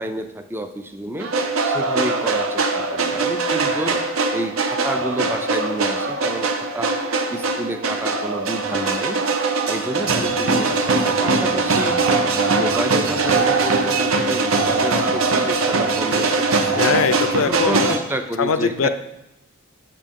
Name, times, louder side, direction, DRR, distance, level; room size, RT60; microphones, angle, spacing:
voice 1, 0.0-1.3 1.6-4.0 4.3-6.9 7.3-9.2 9.7-12.0 12.3-17.0 17.4-18.9, right 1 dB, 10° right, 7 dB, 0.4 m, -30 dB
sound 1, 1.2-18.0, right 3 dB, 65° right, 0.6 m, -21 dB
voice 2, 16.8-17.9 18.4-18.9, left 5 dB, 70° left, 10 dB, 0.4 m, -21 dB
7.4 x 6.5 x 3.6 m, 0.90 s
head